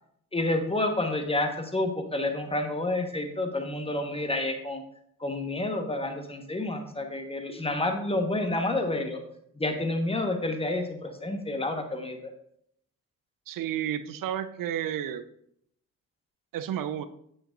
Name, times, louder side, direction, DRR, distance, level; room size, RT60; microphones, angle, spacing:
voice 1, 0.3-4.8 5.2-9.2 9.5-12.2, left 2 dB, 15° left, 5 dB, 1.4 m, -29 dB
voice 2, 13.5-15.2 16.5-17.1, right 10 dB, 50° right, 12 dB, 0.7 m, -31 dB
8.6 x 7.7 x 2.6 m, 0.70 s
figure-of-eight pair, 40°, 43 cm